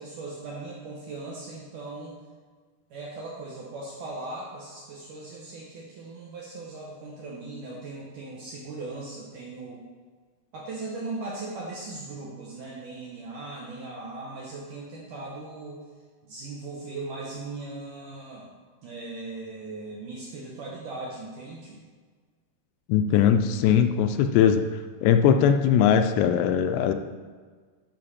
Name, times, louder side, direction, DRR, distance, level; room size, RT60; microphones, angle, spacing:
voice 1, 0.0-2.2 2.9-9.8 10.5-15.8 16.2-18.5 18.8-21.8, right 3 dB, 70° right, -4 dB, 2.0 m, -38 dB
voice 2, 22.9-24.6 25.0-26.9, left 8 dB, 85° left, 7 dB, 2.7 m, -20 dB
10.5 x 6.4 x 4.2 m, 1.5 s
omnidirectional pair, 5.1 m